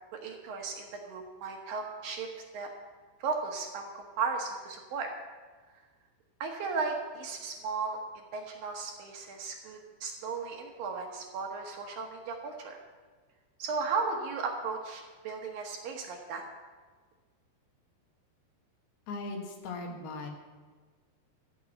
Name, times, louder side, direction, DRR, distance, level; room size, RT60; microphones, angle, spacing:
voice 1, 0.2-2.3 2.5-2.7 3.2-5.1 6.4-8.0 8.3-12.8 13.6-16.4, right 4 dB, 65° right, 2 dB, 2.6 m, -35 dB
voice 2, 19.1-20.3, left 3 dB, 70° left, 2 dB, 3.4 m, -38 dB
14.5 x 6.2 x 8.9 m, 1.4 s
omnidirectional pair, 4.8 m